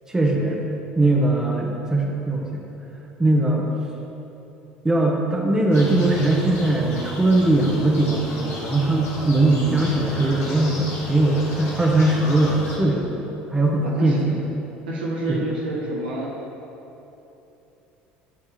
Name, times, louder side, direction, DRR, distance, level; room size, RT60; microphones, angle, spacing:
voice 1, 0.1-0.6 0.9-2.6 3.2-3.6 4.8-14.4 15.3-15.4, right 2 dB, 10° right, -1 dB, 1.2 m, -20 dB
sound 1, 5.7-12.8, left 2 dB, 60° left, 1.5 m, -34 dB
voice 2, 13.8-14.2 14.9-16.3, right 1 dB, 85° right, -3 dB, 1.1 m, -28 dB
8.9 x 3.6 x 4.9 m, 3.0 s
hypercardioid pair, 70°, 5 cm